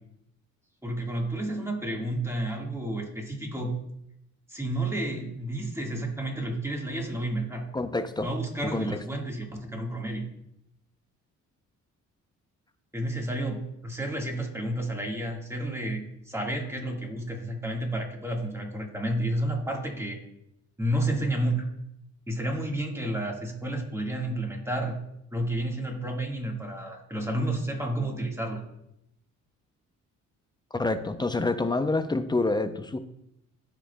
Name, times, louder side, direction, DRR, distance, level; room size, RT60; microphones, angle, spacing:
voice 1, 0.8-3.8 4.5-7.7 8.2-10.3 12.9-20.2 20.8-21.6 22.3-25.0 25.3-28.6, right 1 dB, 10° right, 0 dB, 1.6 m, -31 dB
voice 2, 7.7-8.3 8.6-9.0 30.7-33.0, left 2 dB, 15° left, 10 dB, 0.5 m, -27 dB
13.5 x 5.0 x 2.2 m, 0.79 s
cardioid pair, 90°, 30 cm